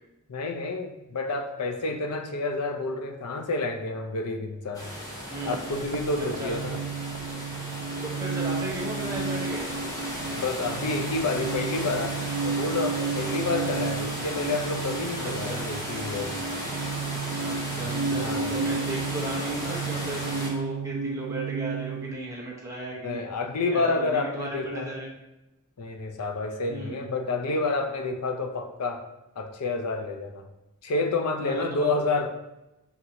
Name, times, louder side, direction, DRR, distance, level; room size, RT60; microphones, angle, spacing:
voice 1, 0.3-4.9 5.4-6.8 10.3-12.2 12.4-16.3 17.8-18.5 23.0-24.9 25.8-29.1 29.4-30.5 30.8-32.3, left 3 dB, 85° left, 5 dB, 0.5 m, -29 dB
sound 1, 4.7-20.5, equal, 15° left, 0.8 m, -35 dB
voice 2, 5.3-5.7 6.2-6.6 8.0-9.7 15.2-15.7 17.4-23.3 23.7-25.1 26.7-27.1 31.4-31.9, right 1 dB, 15° right, -5 dB, 0.8 m, -35 dB
sound 2, 5.4-22.1, right 5 dB, 75° right, 0.3 m, -33 dB
5.9 x 2.7 x 2.6 m, 0.95 s
head